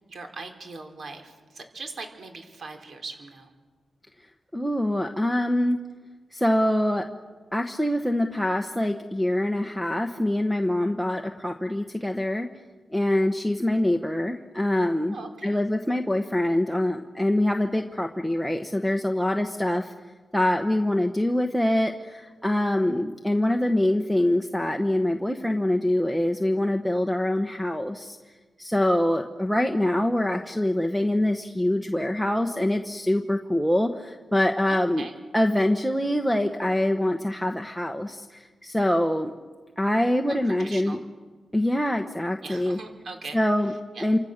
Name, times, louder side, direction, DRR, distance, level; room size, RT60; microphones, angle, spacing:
voice 1, 0.1-3.5 15.1-15.6 34.7-35.1 40.3-41.0 42.4-44.1, right 3 dB, 55° right, 4 dB, 4.0 m, -40 dB
voice 2, 4.5-5.8 6.3-7.0 7.5-12.5 12.9-15.2 15.4-19.9 20.3-28.2 28.6-35.1 35.3-39.3 39.8-41.0 41.5-42.8 43.3-43.7 44.0-44.2, left 1 dB, ahead, 3 dB, 1.1 m, -24 dB
27.5 x 26.0 x 6.6 m, 1.4 s
wide cardioid pair, 115°, 0 cm